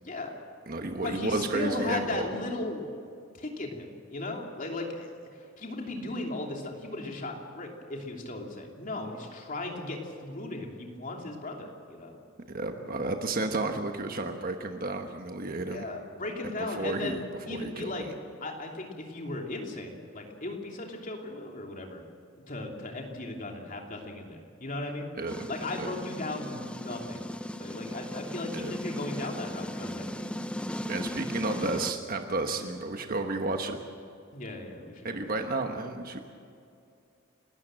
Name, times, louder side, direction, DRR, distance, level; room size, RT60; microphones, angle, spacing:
voice 1, 0.0-0.3 1.0-2.8 3.3-12.2 15.7-18.0 18.4-22.0 22.5-25.1 25.5-27.2 27.6-30.3 32.5-32.7 34.3-35.5, left 2 dB, 40° left, 1 dB, 3.0 m, -37 dB
voice 2, 0.7-2.3 12.5-15.9 16.7-18.1 25.2-25.5 25.8-25.9 28.5-28.7 30.9-33.8 35.0-36.2, right 2 dB, 45° right, 5 dB, 1.3 m, -32 dB
sound 1, 25.3-31.9, left 1 dB, 5° left, 0.6 m, -37 dB
29.5 x 13.5 x 7.7 m, 2.5 s
head